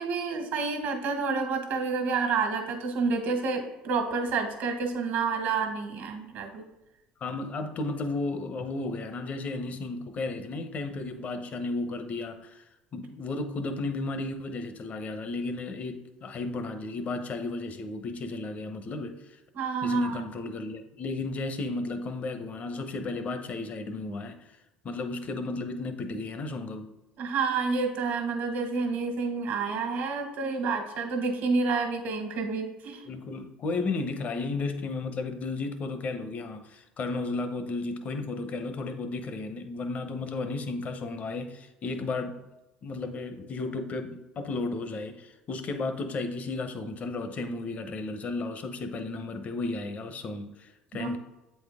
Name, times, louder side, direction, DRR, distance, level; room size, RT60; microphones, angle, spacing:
voice 1, 0.0-6.6 19.5-20.3 27.2-33.0 50.9-51.1, right 4 dB, 70° right, 1.4 m, -29 dB
voice 2, 7.2-12.6 12.9-19.2 19.8-24.5 24.8-26.9 33.1-42.4 42.8-51.2, left 3 dB, 45° left, 0.8 m, -34 dB
7.9 x 4.3 x 3.6 m
supercardioid pair, 85°, 3 cm